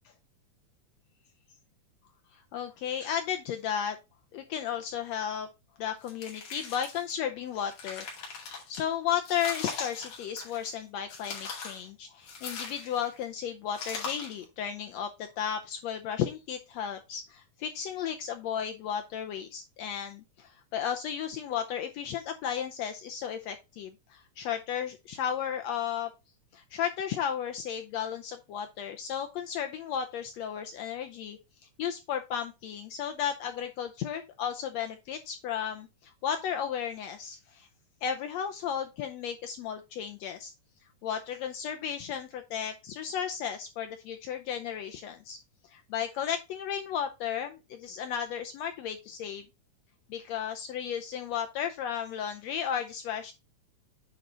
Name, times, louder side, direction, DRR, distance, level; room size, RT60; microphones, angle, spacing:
voice 1, 2.3-4.0 4.3-5.5 5.8-8.1 8.5-26.1 26.5-31.4 31.8-37.7 38.0-40.5 41.0-45.4 45.6-49.4 50.1-53.3, left 8 dB, 80° left, 6 dB, 1.5 m, -34 dB
sound 1, 6.0-7.1 7.6-8.8 9.3-10.7 11.1-11.8 12.3-13.2 13.7-14.4, left 5 dB, 65° left, 3.7 m, -40 dB
9.4 x 4.2 x 3.8 m, 0.25 s
omnidirectional pair, 3.8 m